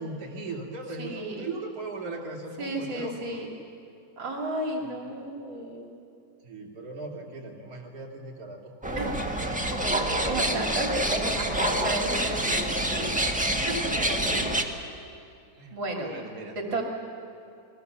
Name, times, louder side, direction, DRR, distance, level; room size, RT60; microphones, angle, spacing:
voice 1, 0.0-3.1 5.1-5.2 6.4-9.6 14.2-14.5 15.6-16.6, right 3 dB, 50° right, -2 dB, 3.3 m, -38 dB
voice 2, 1.0-1.5 2.6-3.5 4.2-5.9 9.0-9.1 9.7-14.5 15.7-16.1 16.6-16.8, right 1 dB, 70° right, 0 dB, 3.3 m, -33 dB
sound 1, 8.8-14.6, right 1 dB, 5° right, 1.3 m, -27 dB
30.0 x 21.5 x 6.9 m, 2.7 s
omnidirectional pair, 2.2 m